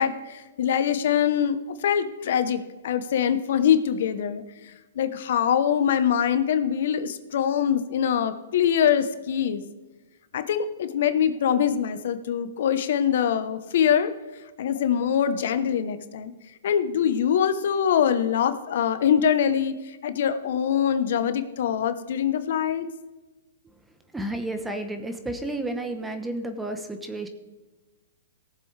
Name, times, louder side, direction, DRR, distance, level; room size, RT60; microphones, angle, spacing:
voice 1, 0.0-4.4 5.0-9.6 10.3-14.1 14.6-16.3 16.6-22.9, left 8 dB, 60° left, 11 dB, 0.9 m, -23 dB
voice 2, 24.1-27.3, right 1 dB, 5° right, 7 dB, 0.9 m, -31 dB
18.0 x 7.2 x 3.3 m, 1.2 s
hypercardioid pair, 150°, 0 cm